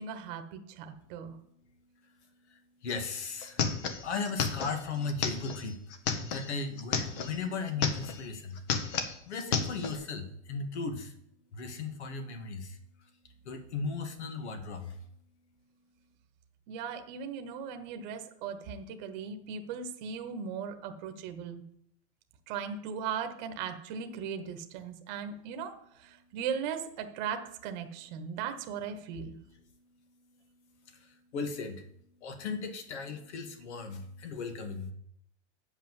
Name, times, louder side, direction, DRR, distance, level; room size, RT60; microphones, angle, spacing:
voice 1, 0.0-1.3 16.7-21.6 22.5-29.4, right 7 dB, 40° right, 7 dB, 1.2 m, -38 dB
voice 2, 2.5-3.6 4.0-8.6 9.3-11.1 11.5-12.8 13.5-15.0 30.9-31.8 32.2-34.9, left 4 dB, 70° left, 7 dB, 2.1 m, -37 dB
sound 1, 2.9-3.0 3.2-7.4 7.7-8.3 8.6-10.0, left 6 dB, 35° left, 1.2 m, -32 dB
8.9 x 5.6 x 7.3 m, 0.71 s
supercardioid pair, 165°, 35 cm